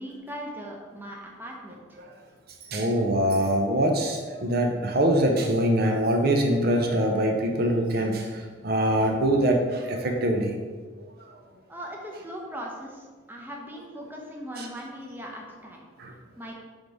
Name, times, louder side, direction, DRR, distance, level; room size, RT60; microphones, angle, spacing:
voice 1, 0.0-2.0 11.7-15.9 16.4-16.5, equal, 10° right, -1 dB, 0.7 m, -39 dB
voice 2, 2.7-8.3 8.6-10.6 14.6-14.7 16.0-16.1, right 1 dB, 50° right, 2 dB, 0.6 m, -23 dB
5.2 x 3.9 x 4.7 m, 1.5 s
head